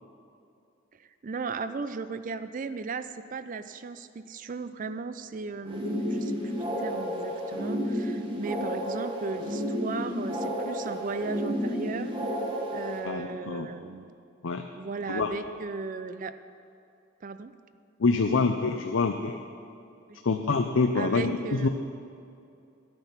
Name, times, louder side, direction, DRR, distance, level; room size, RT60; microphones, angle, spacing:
voice 1, 0.9-12.1 12.7-14.1 14.8-16.3 17.2-17.5 20.1-20.2 20.9-21.7, right 4 dB, 40° right, 12 dB, 0.4 m, -36 dB
sound 1, 5.6-13.0, equal, 25° right, 1.7 m, -31 dB
voice 2, 13.0-13.7 14.4-14.7 15.1-15.3 18.0-19.4 20.2-21.7, left 4 dB, 75° left, 5 dB, 0.6 m, -26 dB
13.0 x 9.0 x 5.8 m, 2.5 s
head